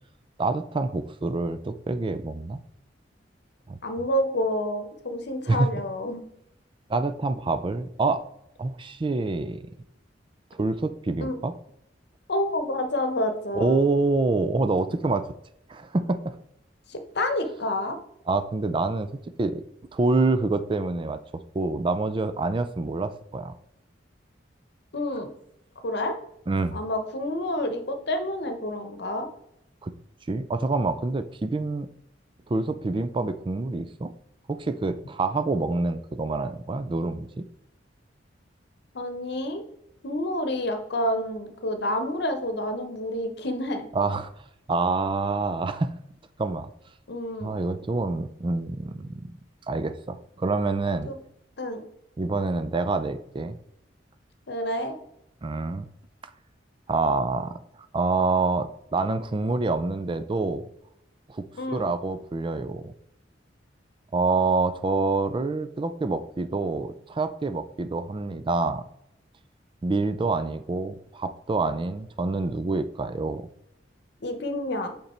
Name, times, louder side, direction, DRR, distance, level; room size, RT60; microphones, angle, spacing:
voice 1, 0.4-2.6 3.7-3.8 5.5-5.7 6.9-8.2 8.6-9.7 10.6-11.5 13.6-15.3 15.7-16.2 18.3-19.1 19.4-19.6 19.9-23.5 26.5-26.8 29.8-29.9 30.3-31.9 32.5-34.1 34.5-37.5 43.9-44.3 44.7-45.9 46.4-46.7 47.4-49.3 49.7-51.1 52.2-53.6 55.4-55.9 56.9-57.6 57.9-60.7 61.3-61.5 61.7-62.9 64.1-68.8 69.8-73.4, right 3 dB, 25° right, 11 dB, 0.4 m, -26 dB
voice 2, 3.8-6.2 11.2-11.4 12.3-13.8 16.9-18.0 24.9-25.3 25.8-26.2 26.7-29.3 38.9-39.6 40.0-43.9 47.1-47.5 51.0-51.2 51.6-51.8 54.5-55.0 61.5-61.9 74.2-74.9, left 1 dB, 65° left, 7 dB, 0.9 m, -29 dB
5.5 x 5.2 x 4.3 m, 0.79 s
head